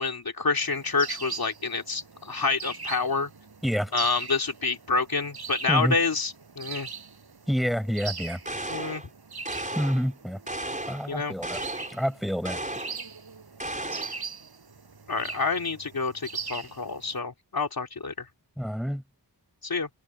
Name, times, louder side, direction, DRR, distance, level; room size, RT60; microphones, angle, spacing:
voice 1, 0.0-3.3 3.9-6.9 8.7-9.0 11.1-11.3 15.1-18.2 19.6-19.9, left 4 dB, 55° left, 2.9 m, -28 dB
sound 1, 1.0-1.6 2.6-3.2 4.0-4.5 5.3-5.9 6.6-7.2 7.9-8.4 9.3-9.8 11.5-12.1 12.7-13.4 13.9-14.5 15.2-15.5 16.2-16.8, right 5 dB, 60° right, 6.2 m, -37 dB
voice 2, 7.5-8.4 9.7-10.4 10.9-11.6 11.9-12.6 18.6-19.0, equal, ahead, 6.0 m, -28 dB
sound 2, 8.4-9.1 9.4-10.1 10.5-11.1 11.4-12.0 12.4-13.0 13.6-14.2, right 1 dB, 20° right, 5.3 m, -34 dB
wide cardioid pair, 75°, 42 cm